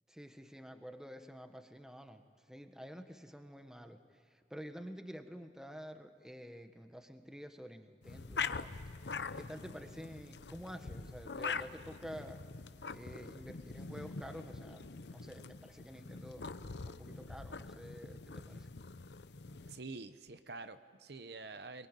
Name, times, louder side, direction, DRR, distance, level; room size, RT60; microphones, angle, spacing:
voice 1, 0.1-2.2 2.5-4.0 4.3-8.8 9.3-12.4 12.9-16.5 16.8-18.7, equal, 5° right, 7 dB, 1.4 m, -49 dB
sound 1, 8.0-19.8, left 5 dB, 70° left, 0.8 m, -44 dB
voice 2, 19.7-21.9, right 3 dB, 65° right, 10 dB, 1.0 m, -47 dB
23.0 x 23.0 x 9.2 m, 2.2 s
head